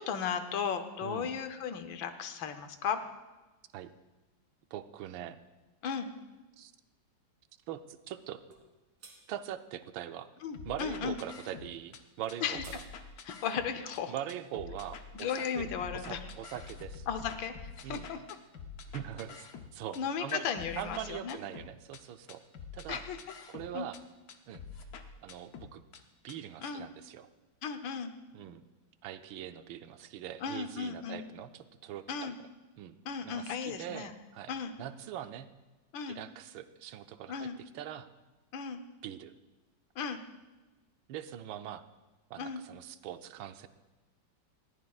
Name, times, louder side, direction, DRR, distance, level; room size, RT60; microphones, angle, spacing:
voice 1, 0.0-3.0 5.8-6.1 10.4-11.2 12.4-12.6 13.3-14.1 15.1-16.3 17.1-18.2 20.0-21.4 22.9-23.2 23.7-23.9 26.6-26.9 27.6-28.1 30.4-31.3 32.1-32.4 33.0-34.1 34.5-34.8 35.9-36.2 37.3-37.6 38.5-38.8 40.0-40.2 42.4-42.6, left 7 dB, 80° left, 9 dB, 1.6 m, -35 dB
voice 2, 4.7-5.4 6.6-6.7 7.7-8.4 9.3-10.3 10.6-12.8 14.1-15.7 15.9-17.1 17.8-18.1 18.9-19.5 19.7-20.5 20.8-22.4 22.7-23.0 23.5-24.0 24.5-24.6 25.2-25.8 26.2-27.3 28.3-28.6 29.0-32.3 32.8-33.0 33.2-34.5 34.8-35.5 36.1-37.5 37.7-38.1 39.0-39.3 41.1-41.8 42.3-43.7, right 11 dB, 90° right, 10 dB, 1.4 m, -42 dB
sound 1, 8.5-8.7 9.0-9.2 12.2-12.8, right 3 dB, 60° right, 2.3 m, -52 dB
sound 2, 10.5-12.0 12.3-14.0 14.3-20.0 20.3-22.0 22.3-24.0 24.3-26.0 26.3-26.4, left 5 dB, 60° left, 1.2 m, -47 dB
20.0 x 14.5 x 2.4 m, 1.2 s
omnidirectional pair, 2.1 m